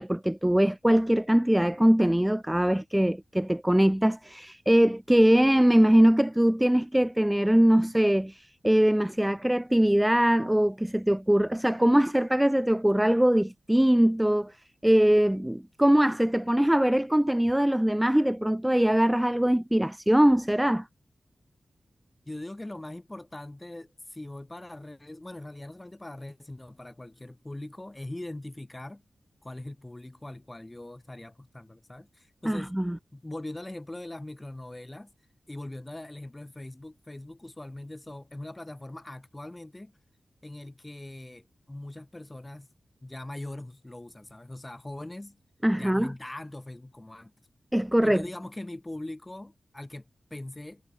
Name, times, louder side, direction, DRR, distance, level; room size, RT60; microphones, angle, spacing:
voice 1, 0.0-14.5 14.8-20.8 32.5-33.0 45.6-46.1 47.7-48.2, right 1 dB, 10° right, 0.4 m, -22 dB
voice 2, 22.3-29.0 29.4-32.7 33.1-35.1 35.5-39.9 40.4-42.7 43.0-45.4 45.7-47.3 48.0-50.8, left 1 dB, 20° left, 2.2 m, -41 dB
cardioid pair, 45°, 0 cm